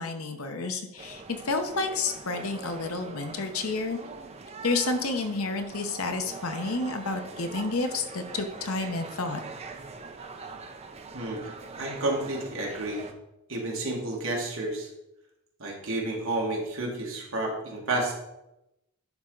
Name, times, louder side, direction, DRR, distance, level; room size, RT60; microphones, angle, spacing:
voice 1, 0.0-4.0 4.6-9.4, left 3 dB, 70° left, 6 dB, 0.9 m, -30 dB
sound 1, 1.0-13.1, right 3 dB, 30° right, 0.6 m, -43 dB
voice 2, 11.1-13.1 13.5-14.9 15.6-18.1, right 2 dB, 65° right, -1 dB, 2.0 m, -31 dB
11.0 x 4.3 x 3.9 m, 0.89 s
head